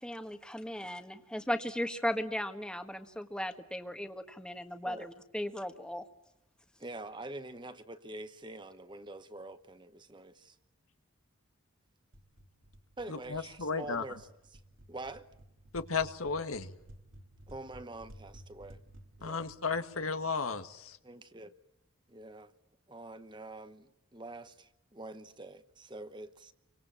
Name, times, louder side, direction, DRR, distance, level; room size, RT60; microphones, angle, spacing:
voice 1, 0.0-6.0, equal, 5° left, 1.5 m, -36 dB
voice 2, 6.8-10.6 13.0-14.6 14.9-15.3 17.5-18.8 19.2-19.5 21.0-21.5 22.1-22.5 22.9-26.5, right 2 dB, 20° right, 1.0 m, -46 dB
sound 1, 12.1-20.8, right 1 dB, 70° right, 2.6 m, -55 dB
voice 3, 13.1-14.0 15.7-16.7 19.2-21.0, left 5 dB, 85° left, 1.7 m, -34 dB
29.0 x 25.0 x 7.4 m
head